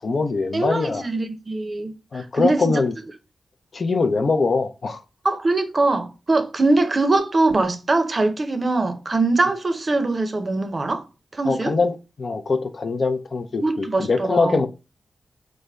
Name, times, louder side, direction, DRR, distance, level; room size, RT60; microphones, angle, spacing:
voice 1, 0.0-1.1 2.1-2.9 3.7-5.0 11.5-14.7, left 4 dB, 60° left, 0.4 m, -23 dB
voice 2, 0.5-2.8 5.2-11.0 11.3-11.7 13.6-14.6, right 2 dB, 50° right, 0.6 m, -22 dB
3.3 x 2.1 x 3.4 m
supercardioid pair, 40°, 0 cm